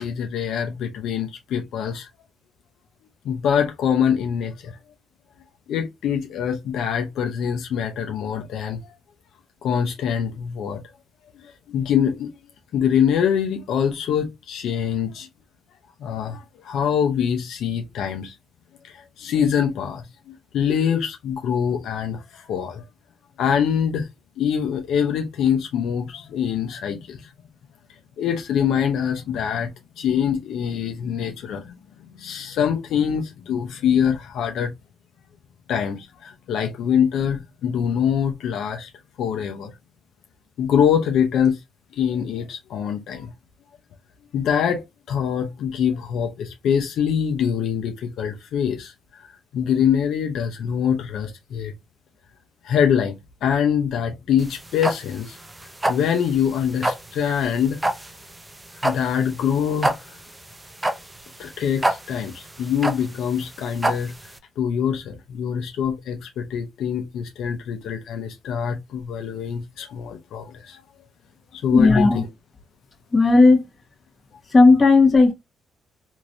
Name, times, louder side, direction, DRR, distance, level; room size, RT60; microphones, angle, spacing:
voice 1, 0.0-2.1 3.2-4.8 5.7-8.9 9.6-10.8 11.4-12.3 12.7-15.3 16.0-18.4 18.8-22.8 23.4-24.1 24.4-27.3 28.2-29.7 30.0-31.7 32.2-34.7 35.7-38.9 39.2-39.7 40.6-41.6 41.9-43.3 44.3-48.9 49.5-51.7 52.6-53.1 53.4-55.4 55.9-57.8 58.8-60.1 61.4-64.1 64.6-70.8 71.5-72.3, left 8 dB, 75° left, 0.7 m, -24 dB
sound 1, 54.4-64.4, right 1 dB, 15° right, 0.6 m, -27 dB
voice 2, 71.7-72.2 73.1-73.6 74.5-75.3, left 3 dB, 30° left, 1.3 m, -14 dB
3.0 x 2.7 x 2.6 m
cardioid pair, 90°, 0 cm